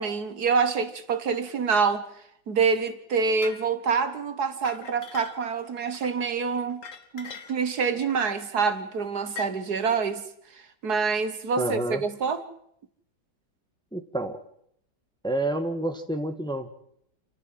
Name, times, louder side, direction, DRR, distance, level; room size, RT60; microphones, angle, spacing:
voice 1, 0.0-2.0 2.5-6.8 7.1-10.3 10.5-12.4, right 5 dB, 60° right, 1.8 m, -26 dB
sound 1, 3.4-3.7 4.5-5.6 5.9-6.1 6.7-7.7 8.1-8.3 9.3-9.5, left 5 dB, 50° left, 1.7 m, -41 dB
voice 2, 11.6-12.0 13.9-14.4 15.2-16.7, right 2 dB, 5° left, 1.5 m, -28 dB
28.5 x 14.0 x 7.7 m
omnidirectional pair, 1.9 m